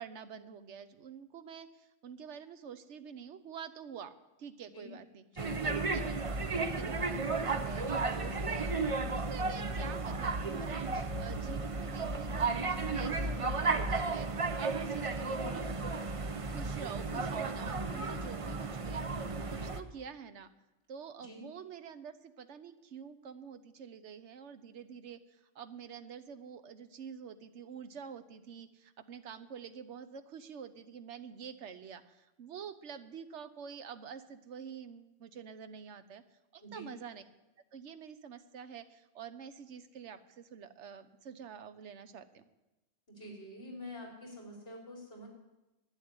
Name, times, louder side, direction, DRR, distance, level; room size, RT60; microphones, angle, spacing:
voice 1, 0.0-5.2 5.6-6.2 6.6-8.7 9.3-16.0 16.5-20.5 20.9-36.2 36.5-37.2 37.7-42.4, right 7 dB, 65° right, 10 dB, 1.1 m, -47 dB
voice 2, 5.3-5.6 9.4-9.7 21.2-21.4 36.6-36.9 43.1-45.3, equal, 50° left, -1 dB, 4.4 m, -47 dB
sound 1, 5.4-19.8, right 3 dB, 35° right, 0.6 m, -34 dB
11.5 x 8.4 x 9.6 m, 1.0 s
omnidirectional pair, 1.3 m